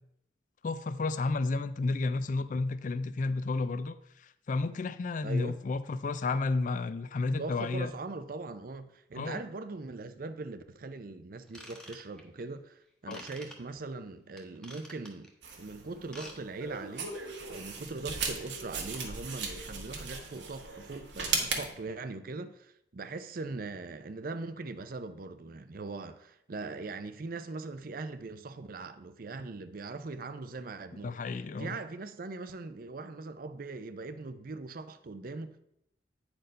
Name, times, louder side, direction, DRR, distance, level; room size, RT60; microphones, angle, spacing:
voice 1, 0.6-7.9 9.1-9.4 13.1-13.2 31.0-31.8, left 3 dB, 45° left, 0.4 m, -32 dB
voice 2, 5.2-5.6 7.4-15.3 15.6-17.1 17.5-31.1 31.6-35.6, right 3 dB, 50° right, 0.5 m, -41 dB
Ratchet pawl / Tools, 11.5-12.4 13.1-13.6 14.4-15.3 16.0-16.4 16.6-16.8 17.3-17.4, equal, 5° left, 1.0 m, -48 dB
sound 1, 15.4-21.7, right 5 dB, 80° right, 1.5 m, -37 dB
9.1 x 4.4 x 5.2 m
head